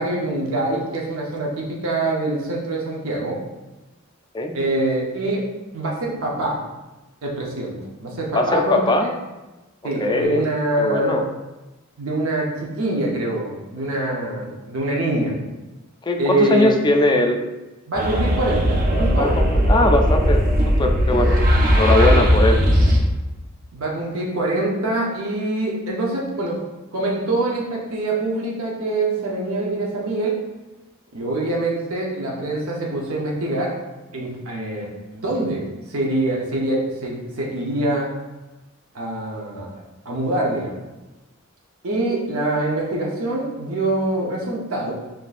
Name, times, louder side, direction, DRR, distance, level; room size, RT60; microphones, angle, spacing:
voice 1, 0.0-3.4 4.5-5.5 5.7-6.6 7.2-7.7 8.0-8.8 9.8-11.1 12.0-15.3 16.2-16.8 17.9-19.4 21.1-21.3 23.7-26.6 26.9-30.3 31.1-33.8 34.1-38.1 38.9-39.7 40.0-40.8 41.8-44.9, right 2 dB, 80° right, -2 dB, 0.8 m, -24 dB
voice 2, 8.3-9.1 10.0-10.4 10.8-11.3 16.0-17.4 19.2-21.4 21.7-22.6, left 1 dB, 20° left, 4 dB, 0.3 m, -20 dB
sound 1, 18.0-23.0, equal, 45° right, 0.6 m, -17 dB
5.8 x 2.6 x 2.4 m, 1.1 s
head